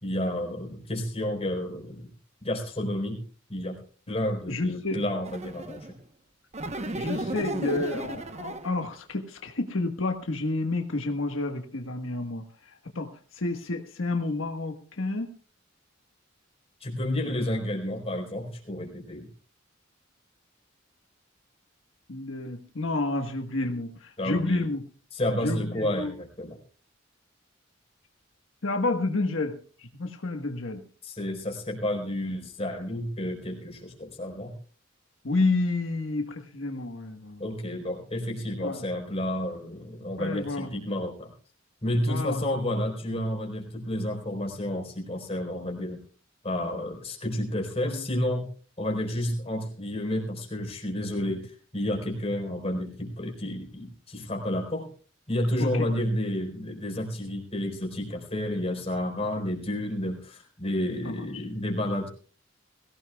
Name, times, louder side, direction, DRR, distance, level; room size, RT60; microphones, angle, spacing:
voice 1, 0.0-2.1 2.4-3.2 3.5-3.8 4.1-5.9 16.8-19.3 24.2-24.7 25.1-26.6 31.0-34.6 37.4-41.3 41.8-46.0 46.4-48.5 48.8-54.9 55.3-62.1, left 1 dB, 30° left, 1 dB, 4.4 m, -30 dB
voice 2, 4.5-5.0 7.0-13.1 13.3-15.3 17.2-17.3 22.1-24.8 25.4-26.1 28.6-30.8 35.2-37.4 38.6-38.8 40.2-40.7 42.1-42.5 47.9-48.1 55.6-55.7 61.0-61.4, left 2 dB, 85° left, 4 dB, 1.4 m, -30 dB
sound 1, 5.2-5.9 6.5-8.8, right 1 dB, 35° right, 1.0 m, -34 dB
22.0 x 17.0 x 2.3 m, 0.39 s
head